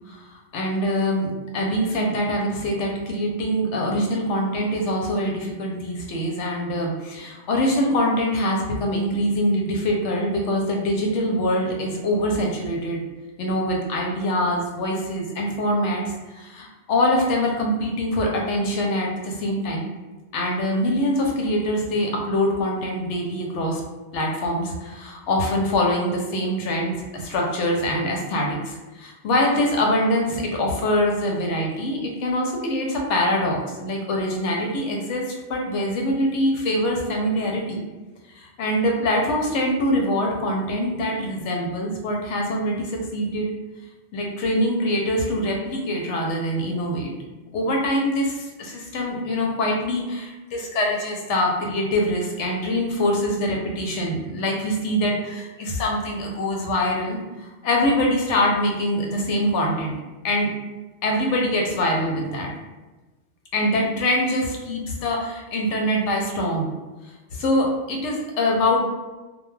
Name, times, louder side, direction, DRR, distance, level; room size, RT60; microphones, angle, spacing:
voice 1, 0.5-1.3 1.5-13.0 13.4-16.0 16.3-19.9 20.3-23.8 24.1-37.8 38.3-43.5 44.1-47.1 47.5-60.0 60.2-60.5 61.0-62.5 63.5-66.7 67.3-68.8, left 1 dB, 85° left, 0 dB, 0.9 m, -24 dB
2.2 x 2.2 x 3.1 m, 1.2 s
omnidirectional pair, 1.2 m